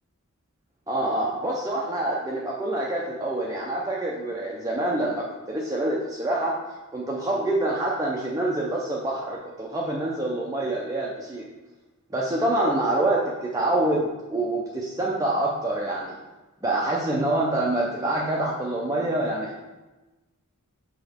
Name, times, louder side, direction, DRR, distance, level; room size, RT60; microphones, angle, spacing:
voice 1, 0.9-6.6 6.9-11.5 12.1-16.2 16.6-19.5, right 1 dB, 15° right, -4 dB, 0.6 m, -26 dB
5.9 x 5.2 x 3.5 m, 1.1 s
head